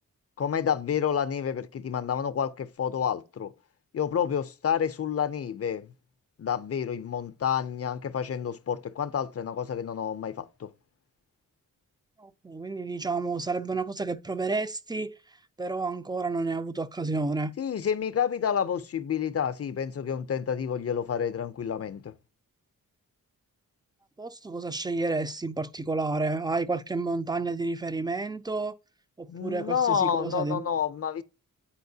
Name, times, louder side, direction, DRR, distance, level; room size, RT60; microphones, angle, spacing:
voice 1, 0.4-3.5 3.9-5.9 6.4-10.7 17.6-22.1 29.3-31.2, left 8 dB, 45° left, 0.5 m, -29 dB
voice 2, 12.2-15.2 15.6-17.5 24.2-28.7 29.2-30.7, right 3 dB, 15° right, 0.4 m, -30 dB
8.6 x 4.4 x 2.7 m
cardioid pair, 80°, 34 cm